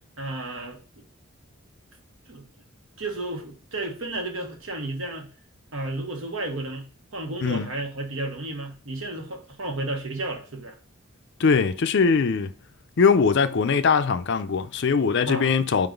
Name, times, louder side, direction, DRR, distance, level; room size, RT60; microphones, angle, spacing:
voice 1, 0.2-0.8 2.3-2.4 3.0-5.3 5.7-10.8 15.3-15.6, right 2 dB, 70° right, 1.3 m, -32 dB
voice 2, 11.4-12.5 13.0-15.9, left 5 dB, 60° left, 0.5 m, -21 dB
5.2 x 3.9 x 5.1 m
head